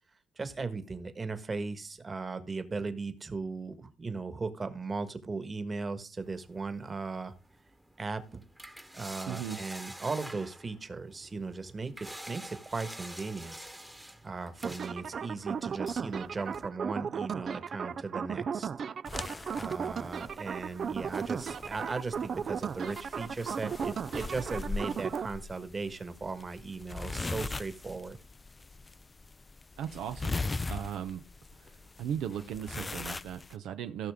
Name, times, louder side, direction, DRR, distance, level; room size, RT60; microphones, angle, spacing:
voice 1, 0.4-7.3 8.0-8.4 8.9-13.6 14.2-18.7 19.5-28.2, right 4 dB, 30° right, 10 dB, 1.5 m, -37 dB
sound 1, 6.2-16.7, right 1 dB, 5° right, 1.1 m, -48 dB
voice 2, 9.3-9.6 29.8-30.4 30.7-31.2 31.6-31.7 32.0-34.1, right 9 dB, 85° right, 8 dB, 0.7 m, -37 dB
sound 2, 14.6-25.3, right 7 dB, 50° right, 0.4 m, -36 dB
sound 3, 19.0-33.5, left 3 dB, 25° left, 0.4 m, -40 dB
15.5 x 6.0 x 3.6 m, 0.32 s
cardioid pair, 90°, 0 cm